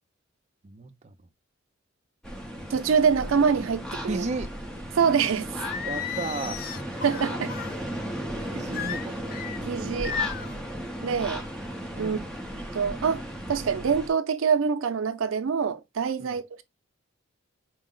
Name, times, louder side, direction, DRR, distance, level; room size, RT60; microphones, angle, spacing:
voice 1, 0.6-1.2 4.1-4.5 5.8-6.6 8.5-9.5 10.0-10.8 11.9-12.2 16.2-16.4, right 3 dB, 35° right, 0.5 m, -35 dB
sound 1, 2.2-14.1, equal, 5° left, 0.7 m, -35 dB
voice 2, 2.7-4.2 5.0-5.5 7.0-7.5 9.7-10.2 11.0-11.4 12.0-12.2 12.7-13.2 13.5-16.6, right 6 dB, 90° right, 0.5 m, -25 dB
Singing, 5.6-7.7 8.7-9.6 10.0-10.6, left 8 dB, 45° left, 0.3 m, -34 dB
4.5 x 2.0 x 3.7 m
head